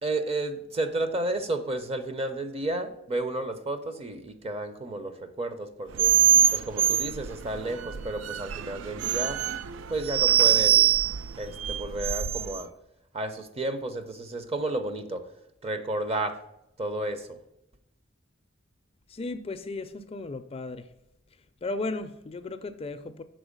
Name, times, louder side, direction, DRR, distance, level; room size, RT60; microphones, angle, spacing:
voice 1, 0.0-6.1 6.5-9.4 9.9-10.9 11.4-12.7 13.1-15.2 15.6-16.4 16.8-17.4, right 2 dB, 30° right, 8 dB, 0.7 m, -32 dB
sound 1, 5.9-12.6, right 10 dB, 65° right, 0.3 m, -24 dB
voice 2, 19.1-20.9 21.6-23.2, left 2 dB, 30° left, 9 dB, 0.4 m, -35 dB
6.2 x 4.2 x 5.1 m, 0.84 s
head